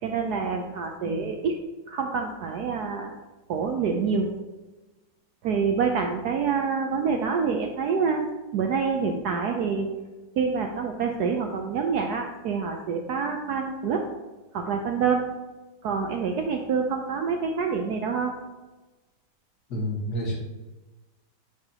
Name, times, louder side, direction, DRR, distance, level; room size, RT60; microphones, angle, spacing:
voice 1, 0.0-1.6 1.9-3.1 3.5-4.3 5.4-8.3 8.5-9.9 10.4-14.1 14.5-15.3 15.8-18.3, right 5 dB, 70° right, 3 dB, 1.0 m, -26 dB
voice 2, 19.7-20.4, equal, 55° left, -2 dB, 1.9 m, -29 dB
9.9 x 4.9 x 2.8 m, 1.2 s
omnidirectional pair, 2.2 m